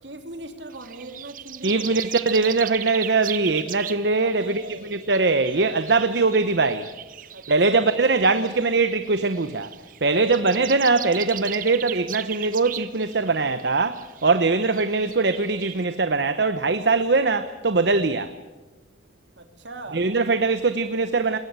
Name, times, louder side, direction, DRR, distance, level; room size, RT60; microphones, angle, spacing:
voice 1, 0.0-2.0 4.2-5.0 7.3-7.9 10.1-10.6 19.4-20.1, right 2 dB, 90° right, 3.2 m, -39 dB
sound 1, 0.7-15.8, right 11 dB, 50° right, 0.7 m, -38 dB
voice 2, 1.6-6.9 7.5-9.7 10.0-18.3 19.9-21.4, right 3 dB, 75° right, 0.9 m, -22 dB
20.5 x 18.5 x 8.8 m
head